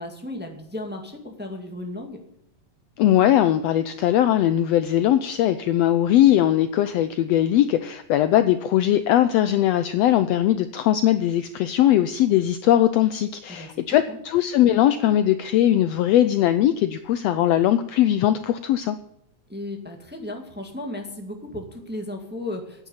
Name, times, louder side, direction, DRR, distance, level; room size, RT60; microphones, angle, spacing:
voice 1, 0.0-2.2 13.5-14.2 19.5-22.9, left 1 dB, 5° right, 2 dB, 1.4 m, -35 dB
voice 2, 3.0-19.0, left 12 dB, 80° left, 11 dB, 1.5 m, -20 dB
10.0 x 9.6 x 7.1 m, 0.76 s
omnidirectional pair, 3.5 m